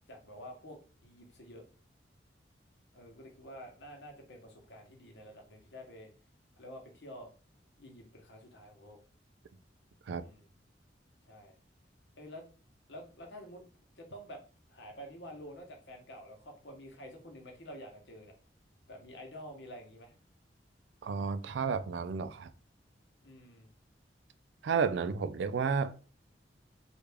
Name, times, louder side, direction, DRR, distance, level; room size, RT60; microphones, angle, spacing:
voice 1, 0.0-1.6 2.9-6.1 6.5-7.3 7.8-9.0 10.2-10.5 11.2-11.6 12.2-12.4 12.9-13.6 14.0-14.4 14.7-18.3 18.9-20.1 23.2-23.7, equal, 75° left, 0.9 m, -49 dB
voice 2, 21.0-22.5 24.6-25.9, right 6 dB, 80° right, 0.3 m, -31 dB
3.3 x 2.4 x 3.4 m
head